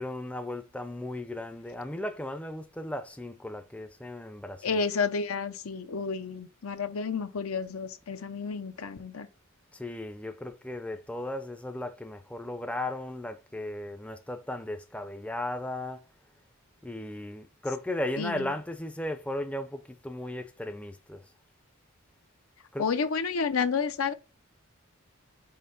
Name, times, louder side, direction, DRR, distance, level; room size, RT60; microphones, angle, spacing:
voice 1, 0.0-4.8 9.7-16.0 16.8-21.2 22.7-22.9, left 1 dB, 5° left, 0.5 m, -36 dB
voice 2, 4.6-9.3 18.2-18.5 22.8-24.1, left 5 dB, 80° left, 0.7 m, -30 dB
5.7 x 4.2 x 3.9 m
head